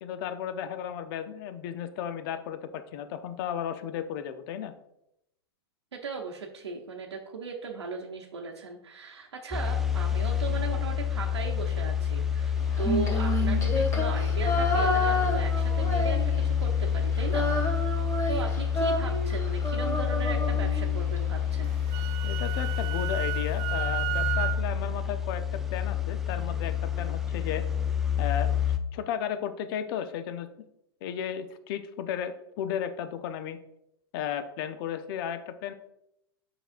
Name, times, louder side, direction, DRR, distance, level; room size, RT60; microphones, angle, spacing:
voice 1, 0.0-4.7 22.2-27.6 28.2-28.6 28.9-30.5 31.0-33.6 34.1-35.7, left 9 dB, 60° left, 10 dB, 0.6 m, -34 dB
voice 2, 5.9-17.5 18.3-21.7, right 4 dB, 90° right, -1 dB, 0.8 m, -37 dB
sound 1, 9.5-28.8, left 8 dB, 5° right, 0.6 m, -28 dB
Female singing, 12.7-16.6 16.9-21.2, left 1 dB, 25° left, 1.8 m, -30 dB
Wind instrument woodwind instrument, 21.7-24.6, right 18 dB, 45° right, 0.4 m, -33 dB
7.9 x 5.9 x 2.5 m, 0.82 s
hypercardioid pair, 105°, 14 cm